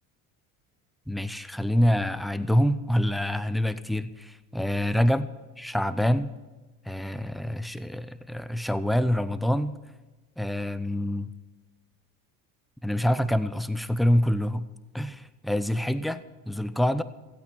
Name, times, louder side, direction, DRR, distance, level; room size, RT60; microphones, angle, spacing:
voice 1, 1.1-5.3 5.6-6.4 6.9-9.8 10.4-11.3 12.8-14.7 14.9-17.0, equal, ahead, 14 dB, 0.4 m, -26 dB
15.5 x 8.8 x 5.9 m, 1.2 s
supercardioid pair, 100°, 43 cm